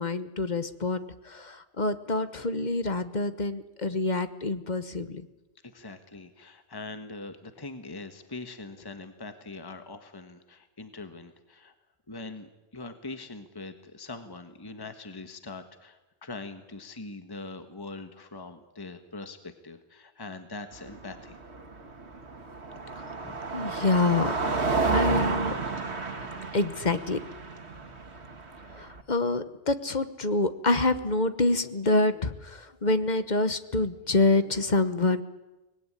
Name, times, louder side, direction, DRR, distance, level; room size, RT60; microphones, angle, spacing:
voice 1, 0.0-5.3 23.5-24.3 24.9-25.6 26.5-27.2 28.7-35.2, left 2 dB, 40° left, 11 dB, 1.2 m, -26 dB
voice 2, 5.7-11.7 12.1-21.4 22.9-23.0 23.2-23.3, left 3 dB, 20° left, 8 dB, 1.5 m, -42 dB
Car passing by, 20.7-29.0, right 4 dB, 70° right, 2.2 m, -31 dB
24.5 x 19.5 x 9.9 m, 1.1 s
omnidirectional pair, 1.1 m